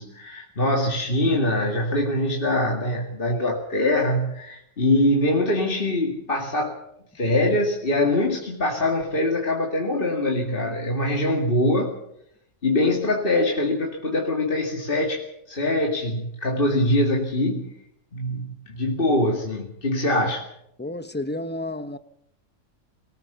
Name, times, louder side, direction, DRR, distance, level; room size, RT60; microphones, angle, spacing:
voice 1, 0.0-6.8 7.1-11.9 12.6-17.7 18.1-20.4, left 1 dB, 40° left, 2.5 m, -23 dB
voice 2, 20.8-22.0, left 1 dB, 10° left, 0.8 m, -31 dB
23.0 x 18.5 x 6.9 m
omnidirectional pair, 1.4 m